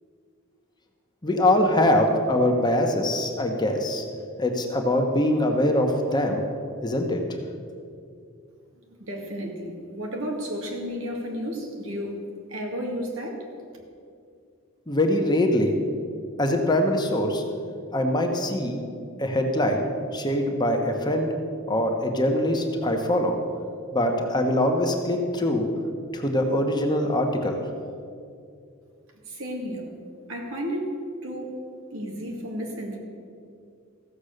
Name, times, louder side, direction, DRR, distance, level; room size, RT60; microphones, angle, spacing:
voice 1, 1.2-4.0 4.4-6.4 6.8-7.2 14.9-15.7 16.4-17.4 17.9-18.8 19.2-19.9 20.1-21.3 21.7-23.4 23.9-25.7 26.1-27.6, left 1 dB, 20° left, 3 dB, 1.2 m, -23 dB
voice 2, 8.9-12.2 12.5-13.4 29.3-29.9 30.3-30.9 31.2-31.6 31.9-33.0, equal, 85° right, 0 dB, 2.2 m, -32 dB
15.0 x 7.1 x 6.6 m, 2.3 s
head